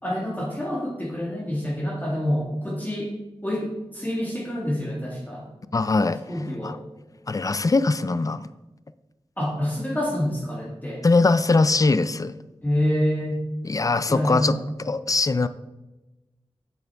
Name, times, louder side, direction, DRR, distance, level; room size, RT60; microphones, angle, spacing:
voice 1, 0.0-3.2 3.4-5.5 6.3-6.8 9.4-11.0 12.6-13.4 14.1-14.6, equal, 15° left, -3 dB, 1.6 m, -27 dB
voice 2, 5.7-6.2 6.6-6.8 7.3-8.5 11.0-12.3 13.6-14.6 14.8-15.5, left 3 dB, 35° left, 13 dB, 0.4 m, -21 dB
8.2 x 7.0 x 3.4 m, 1.1 s
wide cardioid pair, 60°, 10 cm